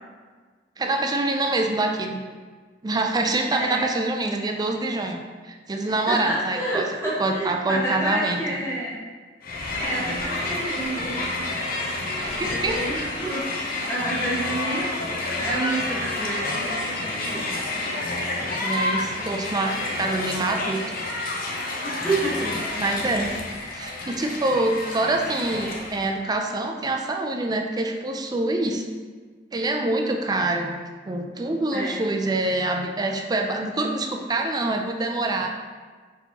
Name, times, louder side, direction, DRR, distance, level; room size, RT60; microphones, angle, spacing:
voice 1, 0.8-2.2 2.8-6.9 7.2-8.4 12.2-12.8 18.6-20.8 22.8-23.4 23.7-28.8 29.5-30.8 31.0-35.5, right 2 dB, 20° right, 3 dB, 0.4 m, -25 dB
voice 2, 3.5-3.8 6.1-9.0 9.7-11.2 12.3-17.5 21.8-22.6 31.7-32.0, right 1 dB, 15° left, -9 dB, 1.4 m, -29 dB
Crowd, 9.4-26.1, left 2 dB, 55° left, 0.6 m, -29 dB
4.3 x 4.1 x 2.9 m, 1.5 s
head